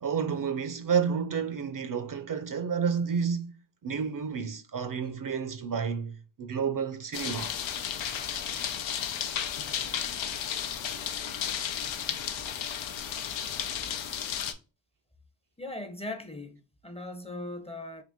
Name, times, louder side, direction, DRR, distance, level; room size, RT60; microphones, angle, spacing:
voice 1, 0.0-3.5 3.8-7.5, right 6 dB, 50° right, 0.5 m, -30 dB
sound 1, 7.1-14.5, left 8 dB, 90° left, 0.7 m, -33 dB
voice 2, 15.6-18.0, left 2 dB, 15° left, 0.6 m, -39 dB
3.8 x 2.8 x 3.5 m
cardioid pair, 80°, 45 cm